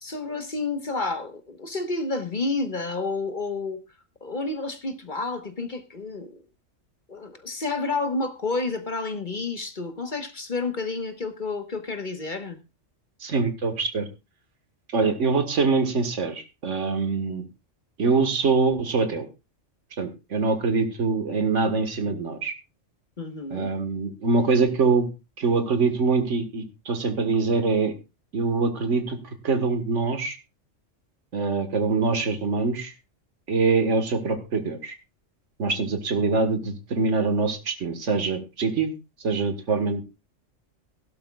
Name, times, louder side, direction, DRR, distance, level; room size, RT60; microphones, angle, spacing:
voice 1, 0.0-3.8 4.2-6.4 7.1-12.6 23.2-23.7, left 3 dB, 40° left, 7 dB, 1.4 m, -30 dB
voice 2, 13.2-14.1 14.9-17.4 18.0-19.3 20.0-22.5 23.5-25.1 25.4-27.9 28.3-29.2 29.4-30.4 31.3-32.9 33.5-34.9 35.6-38.9 39.2-40.0, right 4 dB, 75° right, 8 dB, 1.8 m, -24 dB
17.0 x 11.5 x 2.3 m, 0.26 s
omnidirectional pair, 1.3 m